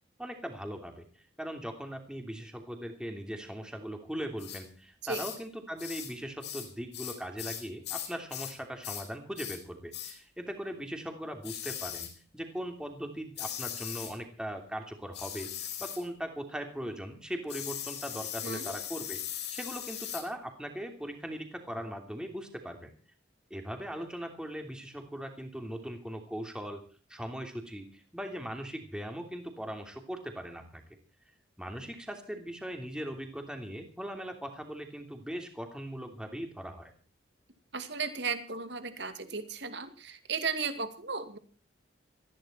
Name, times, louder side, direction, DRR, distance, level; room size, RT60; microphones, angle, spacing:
voice 1, 0.2-12.1 12.3-19.2 19.5-22.9 23.5-26.8 27.1-30.8 31.6-36.9, equal, 5° right, 4 dB, 2.9 m, -39 dB
sound 1, 4.4-4.6 5.1-5.4 5.8-6.1 6.4-8.6 8.8-9.1 9.4-9.6 9.9-10.2 11.4-12.1 13.4-14.2 15.1-16.0 17.5-20.3, left 10 dB, 60° left, 4.8 m, -39 dB
voice 2, 18.4-18.8 37.7-41.4, right 5 dB, 65° right, 9 dB, 2.4 m, -35 dB
19.5 x 15.0 x 4.5 m, 0.38 s
head